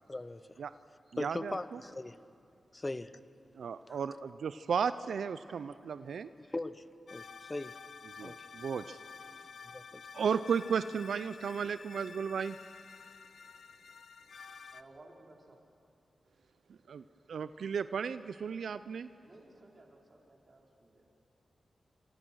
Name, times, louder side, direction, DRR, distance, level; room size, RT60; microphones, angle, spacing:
voice 1, 0.1-0.4 1.2-2.2 2.7-3.1 6.5-6.7 7.1-7.7 8.2-8.3 9.7-9.8, left 2 dB, 25° left, 13 dB, 1.0 m, -38 dB
voice 2, 1.1-1.8 3.6-6.3 8.2-9.0 10.1-12.6 16.9-17.0 17.3-19.1, right 6 dB, 85° right, 13 dB, 0.5 m, -34 dB
sound 1, 7.1-14.8, left 5 dB, 75° left, 0.8 m, -50 dB
voice 3, 14.7-15.6 19.2-21.1, right 2 dB, 50° right, -1 dB, 5.0 m, -57 dB
27.0 x 26.0 x 6.3 m, 2.5 s
cardioid pair, 55°, 0 cm